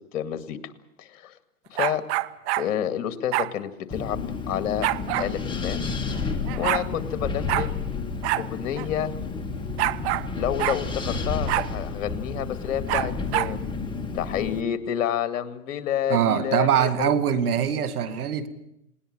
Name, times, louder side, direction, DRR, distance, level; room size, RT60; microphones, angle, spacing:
voice 1, 0.1-0.6 1.0-1.3 1.7-2.0 2.6-4.9 5.2-5.8 6.6-7.9 8.4-9.1 10.4-13.6 14.1-17.4, left 10 dB, 55° left, 11 dB, 2.2 m, -29 dB
sound 1, 1.7-2.7 3.3-3.5 4.8-5.3 6.2-6.3 6.5-6.9 7.5-7.7 8.2-8.5 8.8-8.9 9.8-10.3 10.6-10.8 11.5-11.7 12.9-13.5, right 17 dB, 45° right, 1.0 m, -26 dB
Wind, 3.9-14.6, left 4 dB, 10° left, 2.0 m, -31 dB
voice 2, 16.1-18.5, right 8 dB, 75° right, 13 dB, 2.2 m, -23 dB
20.0 x 18.5 x 8.9 m, 0.81 s
hypercardioid pair, 130°, 45 cm